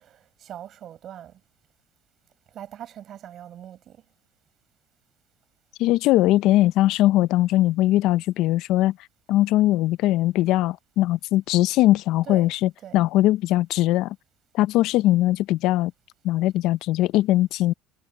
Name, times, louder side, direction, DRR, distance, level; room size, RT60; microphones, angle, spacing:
voice 1, 0.0-1.4 2.5-4.0 12.2-12.5 12.8-13.0, right 11 dB, 50° right, 6.3 m, -41 dB
voice 2, 5.8-9.0 9.3-14.2 14.5-15.9 16.2-17.7, left 15 dB, 70° left, 0.5 m, -20 dB
supercardioid pair, 100°, 0 cm